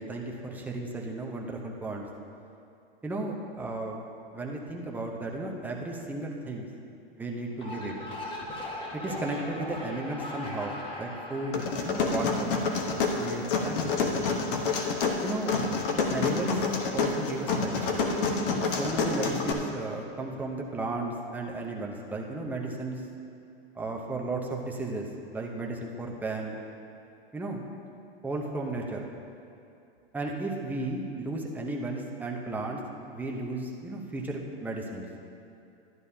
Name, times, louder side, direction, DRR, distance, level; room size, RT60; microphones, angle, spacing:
voice 1, 0.0-2.1 3.0-4.0 4.3-6.7 7.2-7.9 8.9-12.6 13.2-14.2 15.2-15.5 15.9-16.6 16.9-18.1 18.5-23.0 23.8-26.6 27.3-27.6 28.2-29.1 30.1-32.8 33.1-35.1, right 2 dB, 5° right, -1 dB, 0.7 m, -34 dB
sound 1, 7.5-12.8, left 1 dB, 15° left, 1.0 m, -39 dB
sound 2, 11.5-19.5, left 4 dB, 55° left, 1.2 m, -28 dB
12.0 x 10.5 x 2.8 m, 2.6 s
hypercardioid pair, 140°, 32 cm